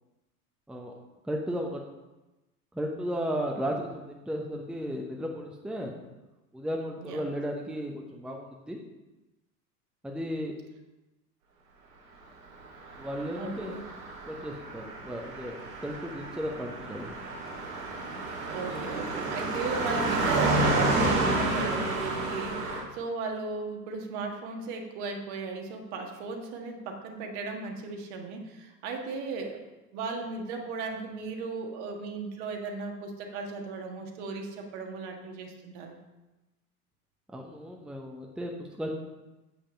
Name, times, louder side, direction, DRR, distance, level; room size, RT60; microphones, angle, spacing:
voice 1, 1.2-1.8 2.7-6.0 6.5-8.8 10.0-10.5 13.0-13.7 14.3-17.1 18.7-19.4 37.3-38.9, equal, ahead, 1 dB, 0.8 m, -35 dB
voice 2, 7.0-7.3 13.3-13.9 18.5-29.6 29.9-36.0, right 4 dB, 50° right, 3 dB, 1.7 m, -36 dB
Car passing by, 12.9-22.8, right 2 dB, 65° right, 2.8 m, -30 dB
8.5 x 5.7 x 5.3 m, 1.0 s
figure-of-eight pair, 80°, 45 cm